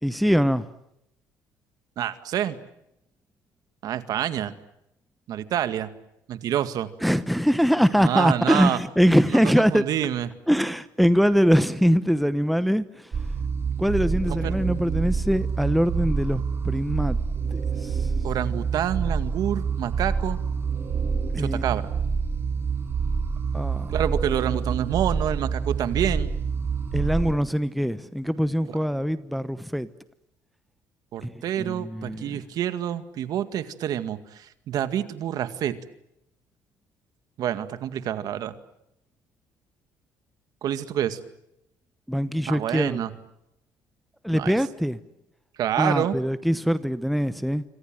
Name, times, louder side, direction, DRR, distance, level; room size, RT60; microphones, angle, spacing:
voice 1, 0.0-0.7 7.0-9.8 10.5-13.1 13.8-17.2 17.5-18.1 21.3-21.7 23.5-23.9 26.9-29.9 31.2-32.4 42.1-43.0 44.2-45.0 45.8-47.6, equal, ahead, 1.0 m, -23 dB
voice 2, 2.0-2.6 3.8-4.5 5.3-5.9 6.3-6.9 8.0-8.8 9.3-10.3 14.3-14.5 18.2-20.4 21.4-21.8 23.9-26.3 31.1-35.8 37.4-38.5 40.6-41.2 42.5-43.1 44.3-44.5 45.6-46.2, right 10 dB, 60° right, 2.1 m, -27 dB
sound 1, 13.1-27.3, right 5 dB, 30° right, 5.3 m, -27 dB
27.0 x 26.0 x 7.8 m
cardioid pair, 125°, 7 cm